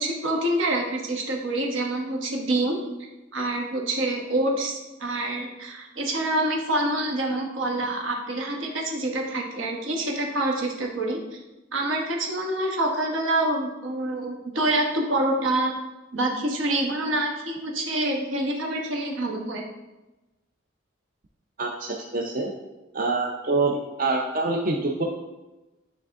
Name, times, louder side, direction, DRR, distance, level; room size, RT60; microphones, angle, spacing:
voice 1, 0.0-2.8 3.3-11.4 11.7-15.7 16.1-19.6, right 1 dB, 80° right, 0 dB, 1.2 m, -26 dB
voice 2, 21.6-22.5 22.9-25.0, right 3 dB, 45° right, 0 dB, 0.6 m, -26 dB
9.2 x 3.5 x 3.6 m, 1.1 s
head